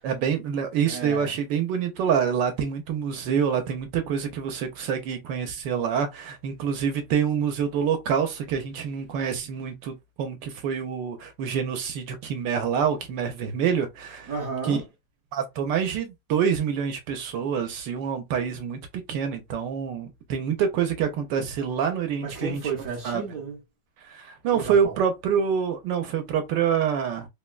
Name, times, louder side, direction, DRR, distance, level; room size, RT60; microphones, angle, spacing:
voice 1, 0.0-14.3 14.6-14.8 15.3-18.8 19.1-22.6 23.0-23.2 24.1-27.3, right 7 dB, 80° right, 1.3 m, -26 dB
voice 2, 0.9-1.3 14.3-14.8 22.2-23.6 24.5-24.9, right 5 dB, 60° right, 1.0 m, -32 dB
3.6 x 2.1 x 2.3 m
omnidirectional pair, 2.0 m